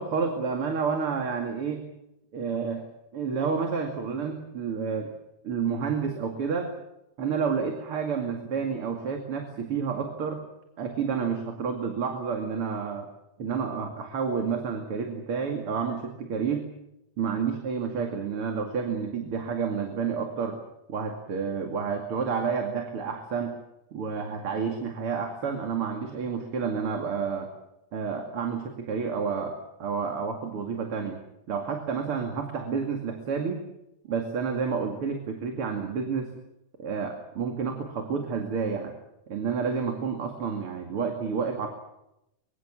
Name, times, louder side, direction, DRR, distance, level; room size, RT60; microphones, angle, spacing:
voice 1, 0.0-1.8 2.3-2.8 3.1-5.1 5.4-6.7 7.2-10.4 10.8-13.1 13.4-16.7 17.2-20.6 20.9-23.5 23.9-27.5 27.9-31.2 31.5-33.6 34.1-36.3 36.8-38.9 39.3-41.7, right 6 dB, 45° right, 4 dB, 3.0 m, -30 dB
24.5 x 23.5 x 7.5 m, 0.86 s
omnidirectional pair, 3.5 m